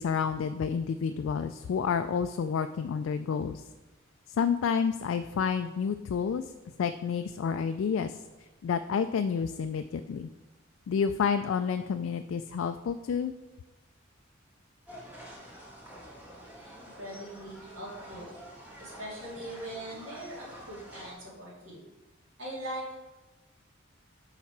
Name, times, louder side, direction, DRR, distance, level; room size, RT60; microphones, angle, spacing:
voice 1, 0.0-3.6 4.4-6.5 6.8-8.2 8.6-10.3 10.9-13.3, left 6 dB, 70° left, 9 dB, 0.3 m, -29 dB
sound 1, 14.9-21.1, equal, 10° right, 1.6 m, -48 dB
voice 2, 16.2-18.3 18.8-21.8 22.4-23.0, right 1 dB, 65° right, -7 dB, 2.6 m, -41 dB
7.0 x 4.9 x 4.7 m, 1.1 s
head